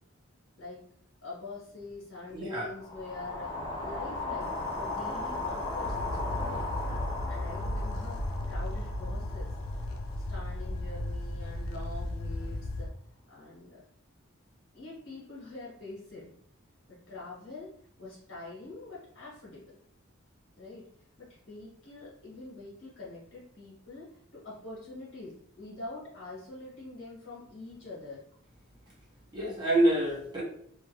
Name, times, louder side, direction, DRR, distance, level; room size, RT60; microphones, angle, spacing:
voice 1, 1.2-6.8 7.3-8.2 8.5-9.5 10.3-12.9 13.3-13.8 14.7-16.3 16.9-17.7 18.0-19.7 20.6-20.9 21.2-28.2, left 2 dB, 60° left, -7 dB, 1.1 m, -45 dB
voice 2, 2.3-2.7 29.3-30.4, right 1 dB, 20° right, -4 dB, 0.8 m, -27 dB
sound 1, 2.8-11.0, left 2 dB, 20° left, 0.6 m, -37 dB
sound 2, 4.4-12.9, left 1 dB, 80° left, 0.4 m, -36 dB
2.4 x 2.2 x 3.1 m, 0.67 s
head